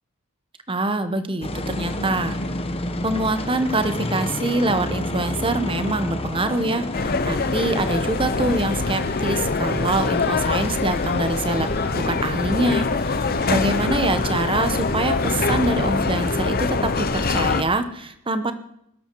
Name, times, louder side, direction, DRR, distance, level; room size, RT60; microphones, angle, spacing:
voice 1, 0.7-2.4 3.0-11.7 11.9-18.5, right 2 dB, 25° right, 10 dB, 1.1 m, -25 dB
sound 1, 1.4-17.6, left 1 dB, 25° left, 1.2 m, -31 dB
sound 2, 6.9-17.6, left 3 dB, 40° left, 0.8 m, -24 dB
sound 3, 11.2-17.4, right 1 dB, 50° right, 5.1 m, -41 dB
20.5 x 12.0 x 4.7 m, 0.76 s
head